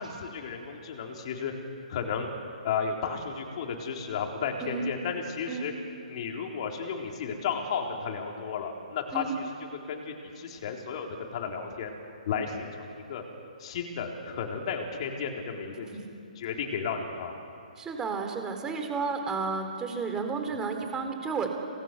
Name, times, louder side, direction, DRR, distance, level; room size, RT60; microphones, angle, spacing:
voice 1, 0.0-1.5 1.9-2.3 2.6-5.7 6.1-9.4 9.7-11.9 12.2-13.2 13.6-15.9 16.4-17.4, left 6 dB, 45° left, 2 dB, 4.0 m, -33 dB
voice 2, 17.8-21.5, right 4 dB, 15° right, 4 dB, 3.4 m, -32 dB
28.0 x 20.5 x 7.1 m, 2.6 s
hypercardioid pair, 140°, 4 cm